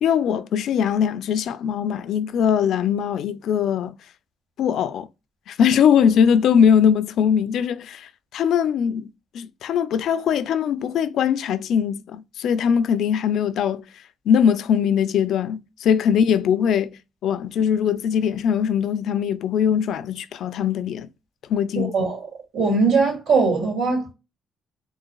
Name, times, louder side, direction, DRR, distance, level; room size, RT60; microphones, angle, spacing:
voice 1, 0.0-3.9 4.6-5.1 5.5-13.9 14.3-17.0 17.2-21.1 21.5-21.9, left 8 dB, 75° left, 0.3 m, -21 dB
voice 2, 21.8-22.2 22.5-24.1, right 4 dB, 80° right, 2.1 m, -20 dB
4.0 x 2.5 x 2.2 m
cardioid pair, 90°, 0 cm